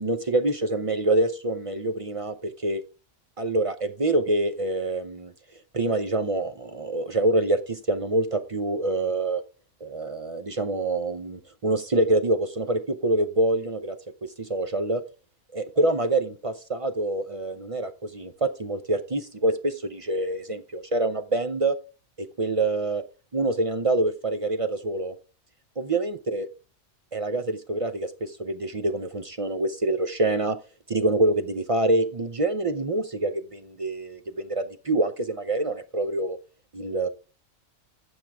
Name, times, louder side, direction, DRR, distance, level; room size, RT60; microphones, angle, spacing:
voice 1, 0.0-2.8 3.4-5.3 5.7-9.4 9.8-14.0 14.2-15.0 15.5-21.8 22.2-23.0 23.3-25.2 25.8-26.5 27.1-30.6 30.9-36.4 36.7-37.1, right 2 dB, 35° right, 9 dB, 0.6 m, -26 dB
15.0 x 5.3 x 3.4 m, 0.32 s
omnidirectional pair, 1.2 m